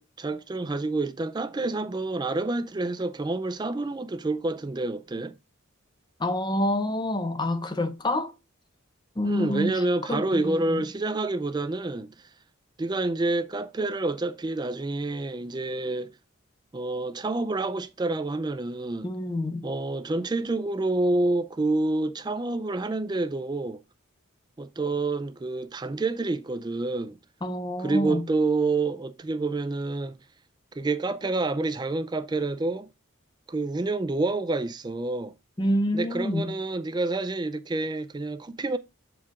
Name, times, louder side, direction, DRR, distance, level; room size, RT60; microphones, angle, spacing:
voice 1, 0.0-5.4 9.2-12.1 12.8-16.1 16.7-19.1 19.6-23.8 24.6-27.2 27.8-30.2 30.7-32.9 33.5-35.3 35.9-38.8, right 2 dB, 20° right, 0.3 m, -28 dB
voice 2, 6.2-8.3 9.2-9.8 10.1-10.8 19.0-19.6 27.4-28.2 35.6-36.5, left 1 dB, 20° left, 0.7 m, -27 dB
7.2 x 4.6 x 3.6 m
head